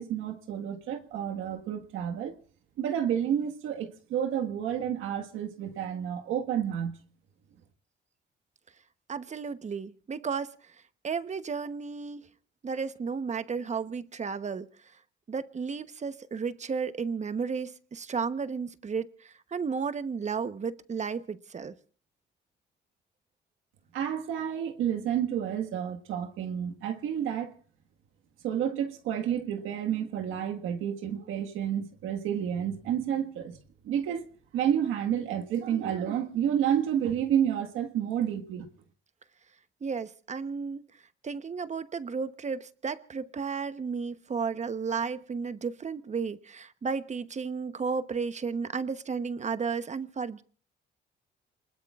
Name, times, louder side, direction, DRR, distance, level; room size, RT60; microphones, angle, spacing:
voice 1, 0.0-2.3 2.8-7.0 23.9-27.5 28.4-33.6 33.8-34.2 34.5-38.7, right 9 dB, 90° right, 1.7 m, -30 dB
voice 2, 9.1-10.8 11.0-12.2 12.6-14.7 15.3-21.7 39.8-40.8 41.2-50.4, right 5 dB, 35° right, 1.0 m, -33 dB
28.0 x 20.5 x 2.5 m
cardioid pair, 90°, 20 cm